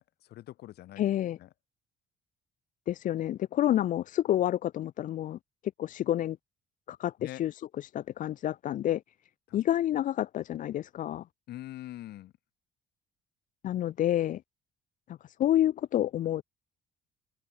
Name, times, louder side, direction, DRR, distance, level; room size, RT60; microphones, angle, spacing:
voice 1, 0.0-1.0 1.4-1.5 7.2-7.4 9.5-9.6 11.5-12.3, left 14 dB, 75° left, 7.4 m, -44 dB
voice 2, 1.0-1.4 2.9-5.4 5.8-6.4 6.9-9.0 9.5-11.3 13.6-14.4 15.1-16.4, left 12 dB, 50° left, 0.5 m, -29 dB
open air
cardioid pair, 110°, 17 cm